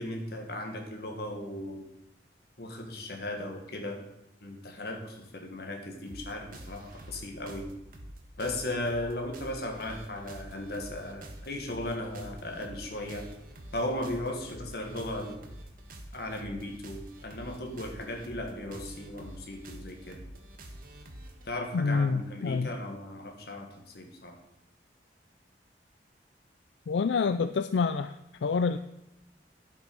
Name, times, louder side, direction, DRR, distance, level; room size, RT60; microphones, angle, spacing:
voice 1, 0.0-1.8 2.6-4.0 4.4-7.7 8.4-13.3 13.7-15.4 16.1-20.2 21.4-24.4, left 1 dB, 60° left, 3 dB, 1.8 m, -36 dB
sound 1, 6.1-21.5, right 1 dB, 55° right, 1.4 m, -47 dB
voice 2, 21.7-22.7 26.9-28.8, left 4 dB, 90° left, 11 dB, 0.4 m, -27 dB
10.5 x 7.6 x 5.4 m, 0.89 s
head